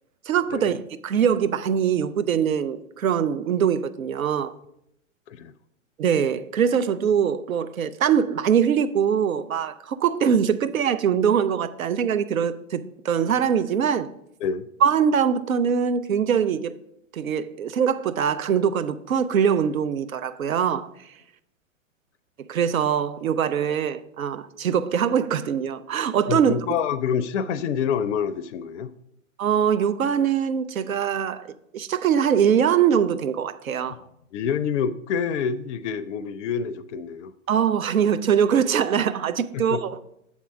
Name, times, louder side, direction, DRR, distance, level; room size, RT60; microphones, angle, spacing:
voice 1, 0.3-4.5 6.0-14.1 14.8-16.7 17.1-20.9 22.5-26.6 29.4-34.0 37.5-39.9, right 8 dB, 80° right, 0.6 m, -22 dB
voice 2, 26.3-28.9 33.9-37.3 39.5-39.8, left 7 dB, 60° left, 0.5 m, -27 dB
7.1 x 3.7 x 5.8 m
hypercardioid pair, 115°, 40 cm